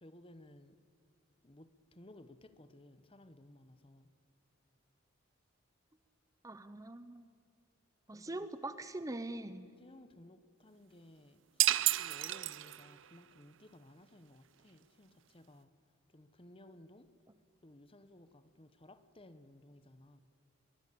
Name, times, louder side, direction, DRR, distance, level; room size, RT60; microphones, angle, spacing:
voice 1, 0.0-0.7 1.4-4.1 8.1-8.5 9.8-11.4 12.0-15.7 16.1-17.1 17.6-20.2, left 1 dB, 25° left, 1.0 m, -58 dB
voice 2, 6.4-7.3 8.1-9.7, right 2 dB, 15° right, 0.7 m, -43 dB
sound 1, 11.6-13.1, right 15 dB, 65° right, 0.6 m, -31 dB
23.5 x 21.0 x 8.5 m
head